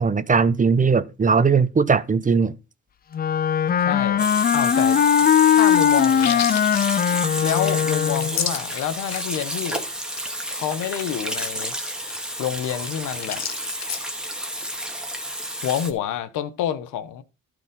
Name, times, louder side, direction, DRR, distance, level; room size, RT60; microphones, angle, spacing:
voice 1, 0.0-2.5, right 5 dB, 25° right, 0.8 m, -19 dB
Wind instrument woodwind instrument, 3.1-8.5, left 8 dB, 30° left, 0.4 m, -19 dB
voice 2, 3.8-4.2 4.5-5.0 5.5-6.5 7.4-9.8 10.5-11.7 12.4-13.4 15.6-17.2, left 10 dB, 85° left, 1.1 m, -28 dB
Water tap faucet / Sink (filling or washing), 4.2-15.9, right 1 dB, 5° right, 2.0 m, -31 dB
sound 1, 5.8-9.4 9.7-9.8 10.1-10.2 10.5-14.0, left 8 dB, 60° left, 1.3 m, -33 dB
12.0 x 5.2 x 5.3 m
cardioid pair, 90°, 30 cm